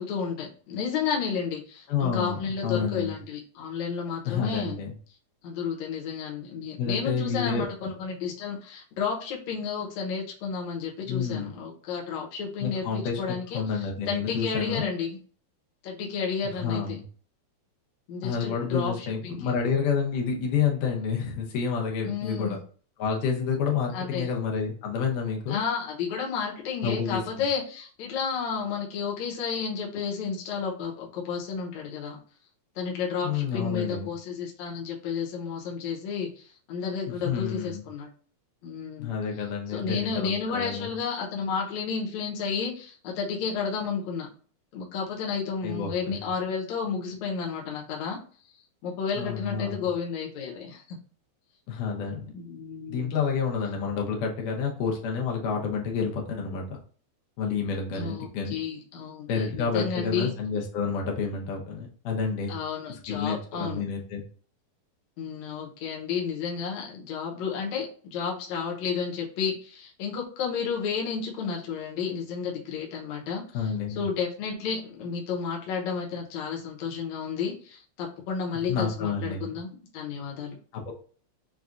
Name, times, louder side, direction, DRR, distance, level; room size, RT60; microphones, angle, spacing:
voice 1, 0.0-4.8 5.4-15.2 15.8-17.0 18.1-19.4 22.0-22.6 23.9-24.3 25.5-32.2 32.8-38.1 38.6-39.1 39.7-44.3 44.7-48.2 48.8-51.0 52.3-53.2 57.9-60.3 62.5-63.8 65.2-79.7 79.9-80.6, left 6 dB, 70° left, -2 dB, 2.0 m, -32 dB
voice 2, 1.9-3.1 4.3-4.9 6.8-7.9 11.1-11.5 12.6-14.9 16.6-17.0 18.2-22.6 23.0-25.6 26.8-27.2 33.2-34.1 37.3-37.8 39.0-40.9 45.6-46.2 49.2-49.8 51.7-52.2 52.9-56.8 57.4-58.5 59.3-62.5 63.1-64.2 73.5-74.0 78.7-79.5 80.7-80.9, left 6 dB, 90° left, -1 dB, 2.4 m, -29 dB
6.6 x 2.3 x 2.5 m, 0.43 s
omnidirectional pair, 3.6 m